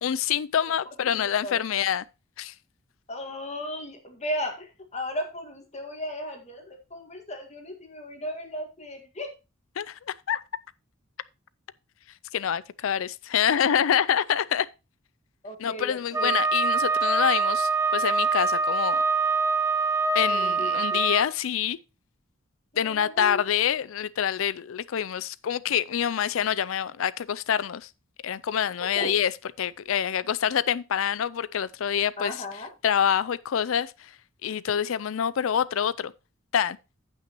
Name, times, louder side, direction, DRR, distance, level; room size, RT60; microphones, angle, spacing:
voice 1, 0.0-2.0 2.4-2.5 9.8-10.4 12.3-14.7 15.6-19.0 20.1-21.8 22.8-27.9 28.2-29.3 29.6-32.4 32.8-34.1 34.4-36.1 36.5-36.8, left 9 dB, 70° left, 0.4 m, -26 dB
voice 2, 1.1-1.6 3.1-9.3 15.4-16.4 20.3-21.0 22.8-23.6 29.0-29.1 32.2-32.7, equal, 35° left, 1.9 m, -36 dB
Wind instrument woodwind instrument, 16.1-21.3, right 4 dB, 15° right, 1.0 m, -24 dB
15.0 x 5.7 x 3.0 m
head